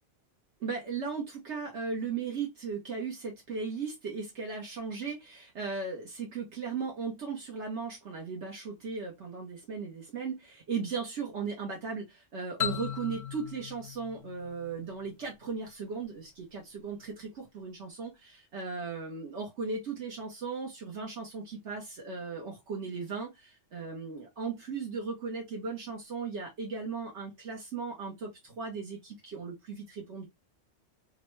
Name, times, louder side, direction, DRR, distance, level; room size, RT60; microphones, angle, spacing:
voice 1, 0.6-30.3, right 5 dB, 70° right, 1.2 m, -37 dB
sound 1, 12.6-15.3, left 8 dB, 65° left, 0.8 m, -37 dB
3.6 x 2.1 x 3.0 m
omnidirectional pair, 1.3 m